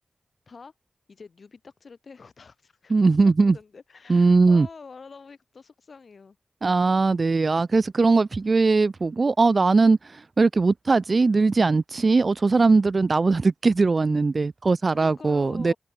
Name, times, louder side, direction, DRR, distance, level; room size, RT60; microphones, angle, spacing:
voice 1, 1.1-2.9 3.4-6.4 14.9-15.8, left 4 dB, 65° left, 7.5 m, -46 dB
voice 2, 2.9-3.6 4.1-4.7 6.6-15.7, right 3 dB, 50° right, 0.3 m, -20 dB
cardioid pair, 60°, 0 cm